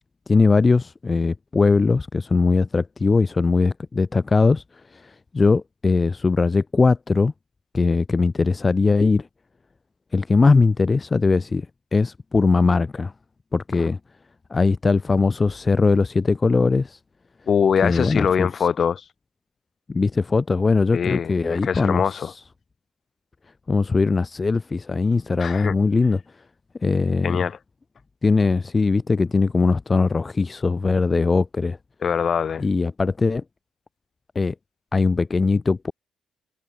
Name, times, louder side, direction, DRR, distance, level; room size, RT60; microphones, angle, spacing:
voice 1, 0.3-4.6 4.9-7.3 7.7-9.3 10.1-11.7 11.9-13.1 13.5-14.0 14.5-17.0 17.8-18.5 19.9-22.3 23.7-26.2 26.8-27.4 28.2-31.8 32.6-33.4 34.4-34.5 34.9-35.9, left 4 dB, 30° left, 0.4 m, -20 dB
voice 2, 17.5-19.0 20.9-22.3 25.4-25.7 27.2-27.6 32.0-32.7, left 7 dB, 50° left, 2.1 m, -23 dB
cardioid pair, 90°, 0 cm